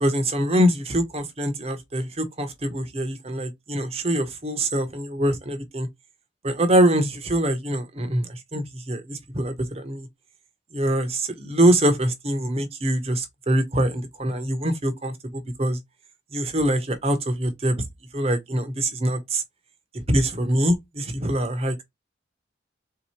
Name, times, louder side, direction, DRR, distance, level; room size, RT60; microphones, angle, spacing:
voice 1, 0.0-5.9 6.4-10.1 10.7-15.8 16.3-17.7 18.1-19.4 19.9-21.8, right 1 dB, 30° right, 0.9 m, -24 dB
3.9 x 2.8 x 4.3 m
head